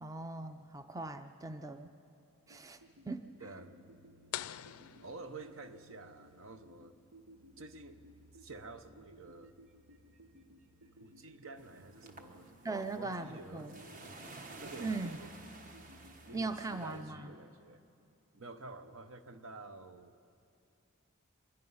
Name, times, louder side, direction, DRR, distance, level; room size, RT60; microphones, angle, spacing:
voice 1, 0.0-1.9 2.5-2.8 3.0-3.3 12.6-13.7 14.8-15.2 16.3-17.3, right 3 dB, 15° right, 9 dB, 0.5 m, -39 dB
sound 1, 2.5-16.4, right 1 dB, 90° right, 1.1 m, -60 dB
voice 2, 3.4-3.8 5.0-6.9 7.6-8.0 8.3-9.5 11.0-12.5 13.0-14.1 14.6-15.4 16.3-17.8 18.3-20.2, right 3 dB, 70° right, 9 dB, 0.9 m, -50 dB
sound 2, 4.3-6.0, left 12 dB, 85° left, 0.4 m, -45 dB
sound 3, 11.6-17.0, right 2 dB, 40° right, 1.2 m, -52 dB
25.0 x 22.5 x 5.6 m, 2.6 s
head